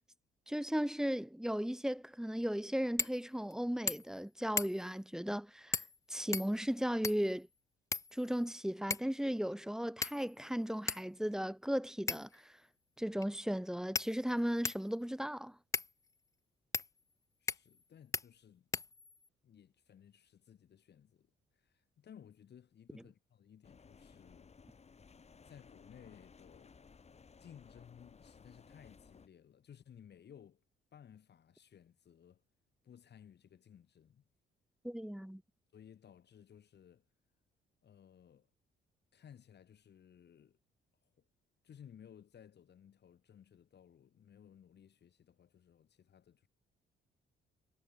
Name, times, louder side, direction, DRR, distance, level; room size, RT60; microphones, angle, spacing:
voice 1, 0.5-5.8 6.1-7.5 8.1-12.5 13.0-15.5 34.8-35.4, equal, 5° right, 1.4 m, -36 dB
sound 1, 3.0-3.2 3.5-3.6 3.9-4.2 4.6-5.0 5.7-6.0 6.3-7.3 7.9-8.5 8.9-9.2 10.0-10.4 10.9-11.0 12.1-12.4 13.2-13.3 13.9-14.9 15.7-15.9 16.7-16.9 17.5-17.8 18.1-18.3 18.7-19.3, left 4 dB, 15° left, 0.3 m, -38 dB
voice 2, 17.4-18.7 19.4-24.5 25.4-26.8 27.4-30.6 30.9-32.4 32.8-34.2 35.7-37.1 37.8-38.5 39.1-40.6 41.0-41.3 41.6-46.5, left 8 dB, 60° left, 5.0 m, -59 dB
sound 2, 23.6-29.3, left 5 dB, 35° left, 2.1 m, -59 dB
cardioid pair, 90°, 20 cm